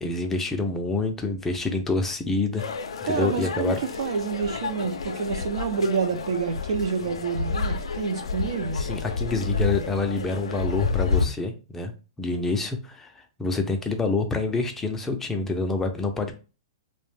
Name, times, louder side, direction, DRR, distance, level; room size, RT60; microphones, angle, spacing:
voice 1, 0.0-2.6 3.1-3.8 8.7-11.9 12.2-16.3, left 3 dB, 10° left, 0.4 m, -27 dB
sound 1, 2.6-11.3, left 4 dB, 85° left, 0.4 m, -30 dB
voice 2, 3.0-8.8, right 5 dB, 70° right, 0.5 m, -28 dB
2.4 x 2.1 x 3.2 m
hypercardioid pair, 130°, 3 cm